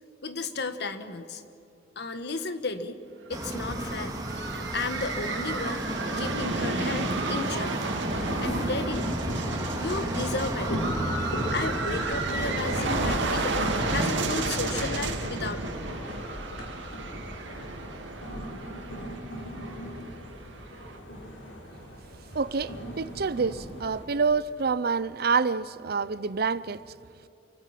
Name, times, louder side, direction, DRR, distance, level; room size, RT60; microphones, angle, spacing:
voice 1, 0.2-1.4 1.9-3.0 3.3-4.2 4.7-5.8 6.2-7.8 8.4-9.1 9.7-11.0 11.5-15.9, left 3 dB, 60° left, 1.4 m, -34 dB
sound 1, 3.3-13.1, right 1 dB, 20° right, 2.4 m, -34 dB
sound 2, 3.3-21.0, right 3 dB, 70° right, 2.3 m, -32 dB
sound 3, 8.1-24.0, equal, 90° left, 6.3 m, -36 dB
voice 2, 22.3-26.8, right 5 dB, 55° right, 0.6 m, -27 dB
28.5 x 24.5 x 6.0 m
head